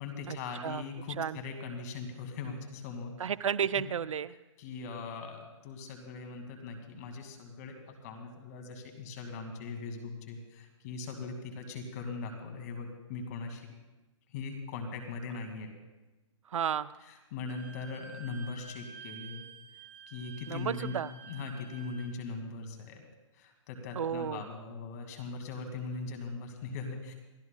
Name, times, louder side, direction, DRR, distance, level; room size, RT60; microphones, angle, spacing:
voice 1, 0.0-3.1 3.7-3.8 4.6-13.7 14.3-15.7 17.3-19.4 20.1-20.9 21.3-23.0 23.3-27.1, left 4 dB, 30° left, 5 dB, 2.0 m, -40 dB
voice 2, 3.2-4.3 16.5-16.9 20.5-21.1 24.0-24.4, right 8 dB, 75° right, 16 dB, 0.5 m, -32 dB
Wind instrument woodwind instrument, 17.5-22.1, right 6 dB, 35° right, 1.8 m, -50 dB
28.5 x 13.5 x 2.2 m, 1.1 s
hypercardioid pair, 160°, 16 cm